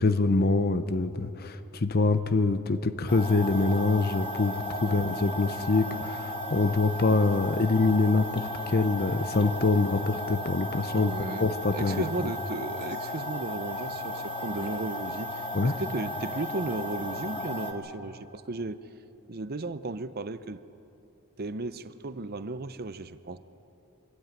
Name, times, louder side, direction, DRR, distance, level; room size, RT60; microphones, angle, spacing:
voice 1, 0.0-6.2 6.5-11.1 11.4-12.0 15.5-15.7, left 3 dB, 45° left, 11 dB, 0.7 m, -25 dB
sound 1, 3.1-17.7, left 1 dB, 25° left, 1.6 m, -35 dB
voice 2, 4.8-5.2 10.9-18.8 19.3-20.6 21.4-23.4, right 2 dB, 45° right, 13 dB, 0.7 m, -35 dB
25.0 x 13.0 x 9.0 m, 2.9 s
head